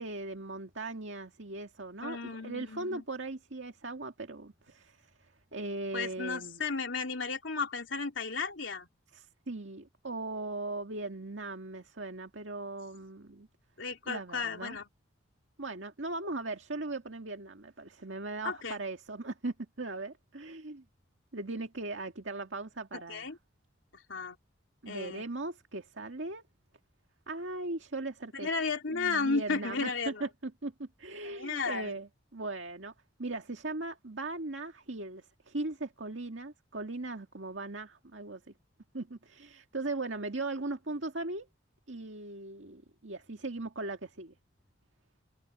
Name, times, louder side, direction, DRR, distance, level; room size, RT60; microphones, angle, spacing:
voice 1, 0.0-6.6 9.1-13.5 14.1-14.8 15.6-20.8 21.3-23.3 24.8-26.4 27.3-28.5 28.9-32.9 33.2-38.5 38.9-41.5 41.9-44.4, right 2 dB, 75° right, 2.0 m, -39 dB
voice 2, 2.0-3.0 5.9-8.9 13.8-14.8 18.4-18.8 22.9-23.4 23.9-24.4 24.9-25.3 28.3-30.3 31.3-32.0, left 4 dB, 85° left, 2.9 m, -34 dB
head